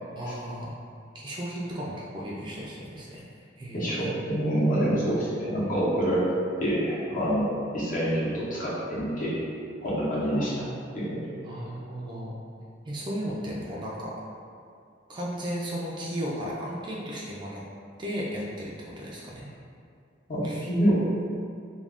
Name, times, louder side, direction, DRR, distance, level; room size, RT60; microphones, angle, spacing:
voice 1, 0.2-0.7 1.1-3.2 3.6-4.0 10.3-10.8 11.4-12.4 12.8-14.1 15.1-17.6 18.0-19.5 20.4-20.7, equal, 25° right, -5 dB, 0.3 m, -35 dB
voice 2, 3.7-6.3 6.6-9.3 9.8-10.5 10.9-11.2 20.3-20.9, equal, 45° left, -8 dB, 0.8 m, -26 dB
2.4 x 2.3 x 3.4 m, 2.4 s
head